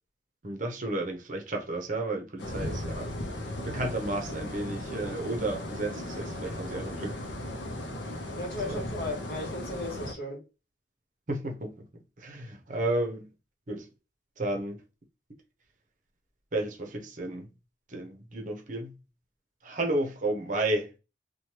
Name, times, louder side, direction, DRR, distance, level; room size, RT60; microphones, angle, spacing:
voice 1, 0.4-7.2 8.6-8.8 11.3-11.8 12.2-13.3 13.7-13.9 14.4-14.8 16.5-17.5 17.9-18.9 19.6-20.9, right 2 dB, 45° right, 0.6 m, -32 dB
sound 1, 2.4-10.1, left 1 dB, 70° left, 0.6 m, -36 dB
voice 2, 8.3-10.4, left 2 dB, 50° left, 0.9 m, -35 dB
3.1 x 2.2 x 2.8 m
head